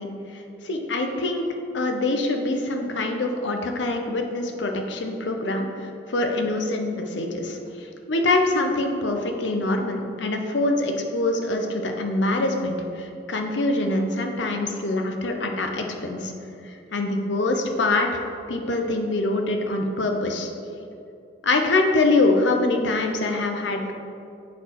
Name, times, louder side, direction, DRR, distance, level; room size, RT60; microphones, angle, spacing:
voice 1, 0.0-1.4 1.7-16.3 16.6-18.2 18.5-20.5 21.4-23.9, left 2 dB, 80° left, 4 dB, 0.7 m, -24 dB
8.3 x 4.1 x 4.5 m, 2.6 s
head